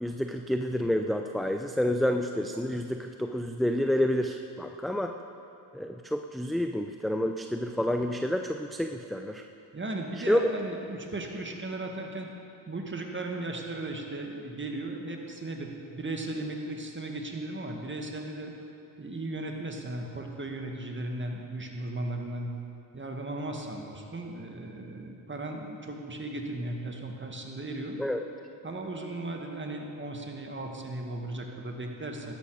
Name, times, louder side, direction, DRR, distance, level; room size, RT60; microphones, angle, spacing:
voice 1, 0.0-5.1 5.7-9.4 10.3-10.4 28.0-28.2, left 1 dB, ahead, 5 dB, 0.5 m, -29 dB
voice 2, 9.7-12.3 12.7-18.5 19.0-22.5 22.9-28.0 28.6-32.3, right 2 dB, 25° right, 2 dB, 2.0 m, -36 dB
13.0 x 11.5 x 5.0 m, 2.7 s
supercardioid pair, 65°, 49 cm